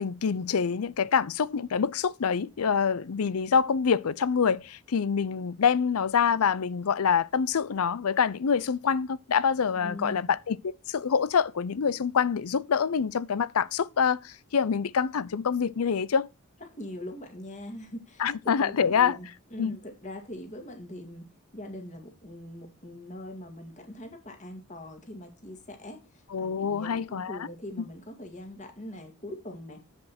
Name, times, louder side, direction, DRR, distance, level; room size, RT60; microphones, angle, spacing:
voice 1, 0.0-10.6 10.9-16.3 18.2-19.2 19.6-19.8 26.3-27.4, left 6 dB, 80° left, 0.5 m, -26 dB
voice 2, 9.7-10.3 16.7-29.8, left 1 dB, 35° left, 2.2 m, -42 dB
7.8 x 7.4 x 4.3 m
head